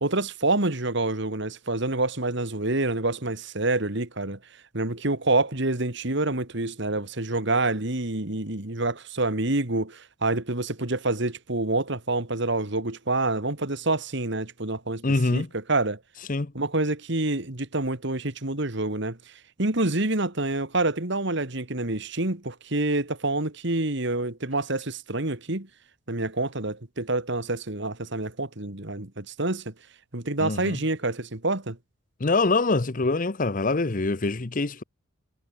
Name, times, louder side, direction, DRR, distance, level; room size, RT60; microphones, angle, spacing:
voice 1, 0.0-4.4 4.7-15.0 15.3-16.0 16.5-19.2 19.6-25.7 26.1-29.7 30.1-31.8, right 2 dB, 60° right, 2.4 m, -27 dB
voice 2, 15.0-15.5 16.3-16.5 30.4-30.8 32.2-34.8, left 3 dB, 40° left, 0.8 m, -24 dB
head